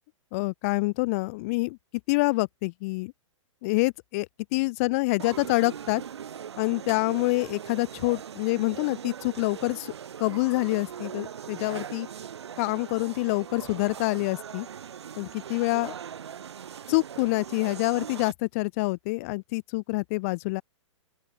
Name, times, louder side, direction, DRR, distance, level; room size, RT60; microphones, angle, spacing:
voice 1, 0.3-1.8 2.1-3.1 3.6-4.3 4.5-6.0 6.6-9.9 10.2-12.1 12.6-14.7 15.2-15.9 16.9-20.6, left 25 dB, 30° left, 0.5 m, -26 dB
sound 1, 5.2-18.3, right 8 dB, 55° right, 5.0 m, -40 dB
open air
figure-of-eight pair, 115°, 17 cm